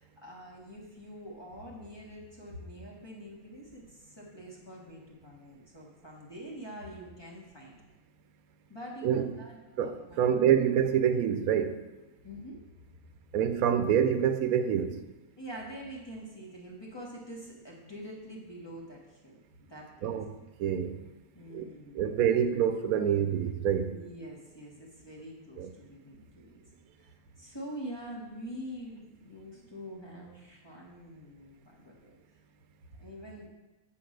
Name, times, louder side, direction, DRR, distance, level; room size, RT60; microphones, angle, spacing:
voice 1, 0.0-7.7 8.7-10.4 12.2-12.6 15.4-19.4 19.7-20.2 21.3-22.0 23.9-26.6 27.0-32.2 33.0-33.5, equal, 20° left, 1.3 m, -45 dB
voice 2, 9.8-11.8 13.3-15.0 20.0-20.3 20.6-21.1 21.5-21.7 21.9-23.9 25.6-25.7, right 8 dB, 85° right, 1.0 m, -26 dB
7.8 x 3.9 x 6.3 m
omnidirectional pair, 1.5 m